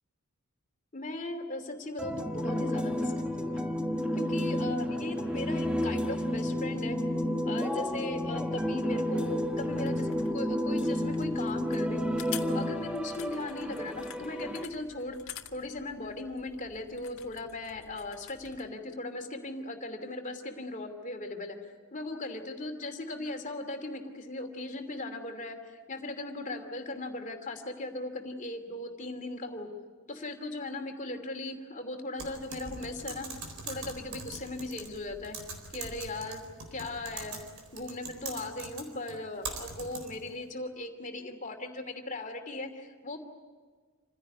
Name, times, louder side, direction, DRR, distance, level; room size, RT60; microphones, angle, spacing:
voice 1, 0.9-3.6 4.2-7.0 7.4-12.1 12.5-15.2 15.5-29.7 30.1-33.3 33.6-35.4 35.7-36.4 36.7-37.4 37.7-43.2, left 2 dB, 35° left, 5 dB, 2.7 m, -38 dB
sound 1, 2.0-14.6, equal, 5° right, 1.3 m, -31 dB
sound 2, 9.4-18.7, left 10 dB, 70° left, 1.7 m, -48 dB
Typing, 32.2-40.3, right 4 dB, 70° right, 4.2 m, -43 dB
27.5 x 16.5 x 9.7 m, 1.5 s
head